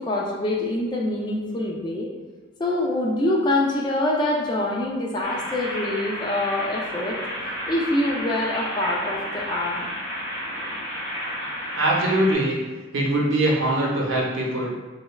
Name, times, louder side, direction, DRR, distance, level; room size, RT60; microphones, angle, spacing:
voice 1, 0.0-2.1 2.6-7.2 7.7-9.9, left 1 dB, 20° left, -2 dB, 0.4 m, -25 dB
sound 1, 5.2-12.3, equal, 45° left, 1.3 m, -32 dB
voice 2, 11.7-12.6 12.9-14.8, right 1 dB, 80° right, -3 dB, 0.8 m, -22 dB
3.4 x 3.1 x 2.2 m, 1.3 s
head